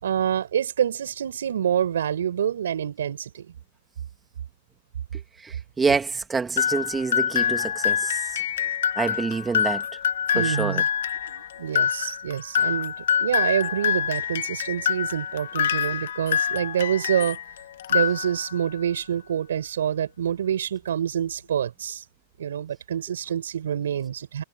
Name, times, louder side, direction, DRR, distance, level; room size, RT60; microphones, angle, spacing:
voice 1, 0.0-3.5 10.3-10.9 11.3-17.4 17.9-22.0 22.4-24.4, right 9 dB, 80° right, 5.8 m, -27 dB
voice 2, 5.4-8.4 9.0-9.8 10.4-10.8, right 4 dB, 15° right, 2.2 m, -27 dB
sound 1, 6.6-17.4 17.8-18.7, left 8 dB, 75° left, 2.0 m, -26 dB
hypercardioid pair, 115°, 0 cm